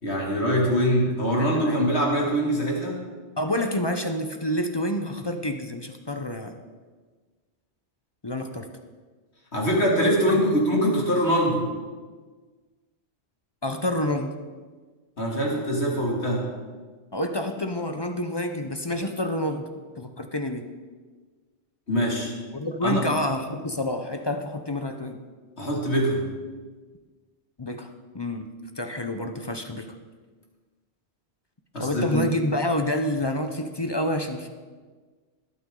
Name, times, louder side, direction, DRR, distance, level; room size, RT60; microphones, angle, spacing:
voice 1, 0.0-3.0 9.5-11.6 15.2-16.4 21.9-22.3 22.8-23.0 25.6-26.2 31.7-32.2, equal, 60° left, -2 dB, 2.9 m, -23 dB
voice 2, 1.4-1.8 3.4-6.6 8.2-8.7 10.4-10.5 13.6-14.4 17.1-19.7 20.0-20.7 22.5-25.2 27.6-28.5 28.8-29.9 31.8-34.5, left 1 dB, 25° left, 6 dB, 0.6 m, -28 dB
20.5 x 9.1 x 3.8 m, 1.4 s
omnidirectional pair, 1.2 m